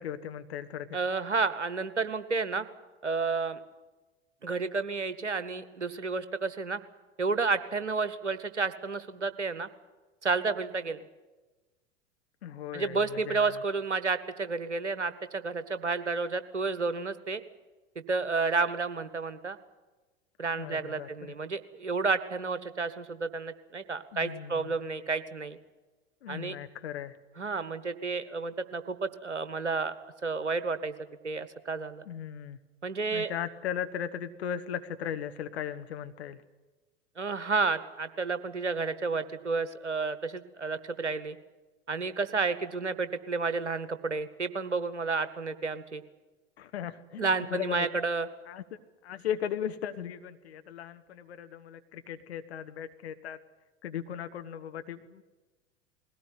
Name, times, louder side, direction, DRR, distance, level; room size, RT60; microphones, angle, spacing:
voice 1, 0.0-0.9 12.4-13.5 20.6-21.1 24.1-24.8 26.2-27.2 32.1-32.6 33.1-36.4 46.6-47.9 48.5-48.6 49.0-53.4 53.8-55.2, left 9 dB, 65° left, 9 dB, 1.3 m, -37 dB
voice 2, 0.9-2.7 3.0-3.6 4.4-6.8 7.2-9.7 10.2-11.0 12.7-17.4 18.1-19.6 20.4-25.6 26.3-26.5 27.4-29.9 30.2-30.9 31.2-32.0 32.8-33.3 37.2-41.4 41.9-46.0 47.2-48.3, right 4 dB, 85° right, 13 dB, 1.1 m, -31 dB
20.5 x 17.5 x 9.4 m, 1.2 s
figure-of-eight pair, 85°, 34 cm